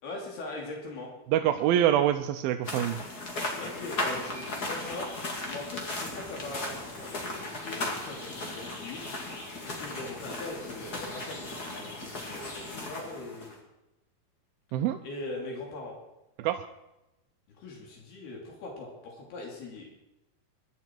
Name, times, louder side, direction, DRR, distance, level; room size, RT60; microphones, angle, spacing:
voice 1, 0.0-1.1 3.6-5.1 5.4-13.6 15.0-16.0 17.5-19.9, left 2 dB, 85° left, -1 dB, 4.8 m, -41 dB
voice 2, 1.3-3.0 14.7-15.0 16.4-16.6, right 11 dB, 80° right, 6 dB, 2.5 m, -25 dB
sound 1, 2.6-13.6, left 2 dB, 30° left, 2.3 m, -36 dB
24.0 x 11.5 x 4.5 m, 0.94 s
omnidirectional pair, 4.4 m